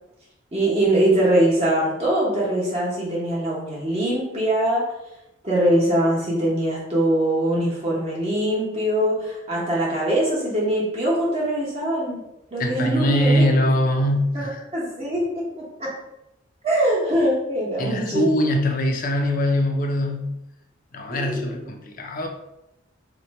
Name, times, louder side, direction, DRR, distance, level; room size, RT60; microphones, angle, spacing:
voice 1, 0.5-4.8 5.4-12.2 12.5-13.5 14.7-15.9 16.6-18.3 21.1-21.5, right 1 dB, 30° right, -5 dB, 1.0 m, -22 dB
voice 2, 12.6-14.6 17.8-20.4 20.9-22.3, equal, 45° left, 3 dB, 0.5 m, -22 dB
2.8 x 2.1 x 4.1 m, 0.88 s
head